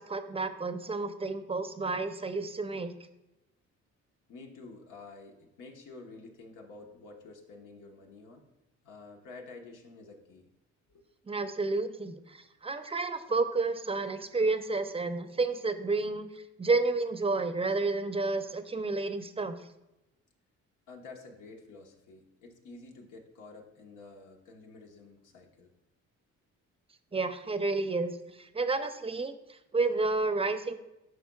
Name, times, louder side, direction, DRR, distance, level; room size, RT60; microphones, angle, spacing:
voice 1, 0.0-2.9 11.3-19.7 27.1-30.7, right 3 dB, 20° right, 9 dB, 0.6 m, -31 dB
voice 2, 4.3-8.5 8.8-10.5 10.9-11.0 20.9-25.7, left 3 dB, 90° left, 2 dB, 1.3 m, -50 dB
11.0 x 5.0 x 2.3 m, 0.95 s
cardioid pair, 90°, 30 cm